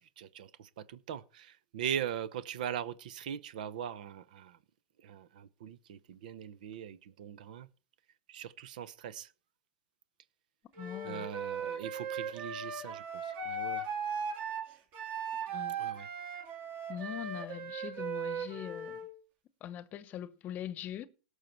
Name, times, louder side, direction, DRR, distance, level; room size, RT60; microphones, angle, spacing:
voice 1, 0.0-4.6 5.0-7.7 8.3-9.3 11.0-13.9 15.8-16.1, right 9 dB, 75° right, 0.8 m, -41 dB
Wind instrument woodwind instrument, 10.7-19.1, right 5 dB, 45° right, 3.5 m, -38 dB
voice 2, 10.8-11.3 15.5-15.8 16.9-19.0 19.6-21.1, left 11 dB, 40° left, 0.9 m, -42 dB
18.0 x 6.5 x 4.4 m
hypercardioid pair, 110°, 5 cm